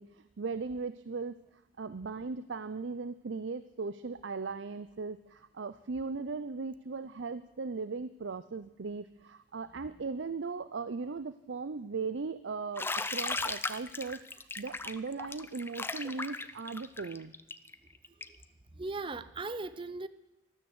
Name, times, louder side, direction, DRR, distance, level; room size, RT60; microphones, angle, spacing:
voice 1, 0.0-1.4 1.8-17.3, right 4 dB, 70° right, 13 dB, 0.6 m, -38 dB
Bathtub (filling or washing), 12.8-18.4, left 3 dB, 10° left, 0.5 m, -37 dB
voice 2, 18.7-20.1, right 3 dB, 25° right, 14 dB, 0.7 m, -38 dB
13.5 x 13.0 x 8.0 m, 0.98 s
head